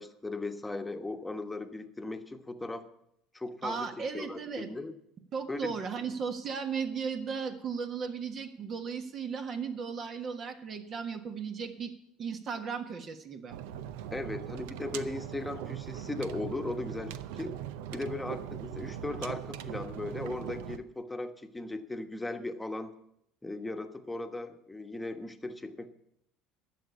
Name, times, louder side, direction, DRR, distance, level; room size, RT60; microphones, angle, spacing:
voice 1, 0.0-2.8 3.3-3.9 4.1-4.4 4.7-4.9 5.5-5.8 14.1-17.6 17.9-22.9 23.4-25.9, left 2 dB, 10° left, 7 dB, 1.2 m, -37 dB
voice 2, 3.6-4.7 5.3-11.9 12.2-13.6, right 6 dB, 45° right, 6 dB, 1.4 m, -36 dB
sound 1, 13.5-20.8, right 10 dB, 75° right, 0.6 m, -40 dB
12.0 x 7.1 x 8.4 m, 0.77 s
hypercardioid pair, 80°, 0 cm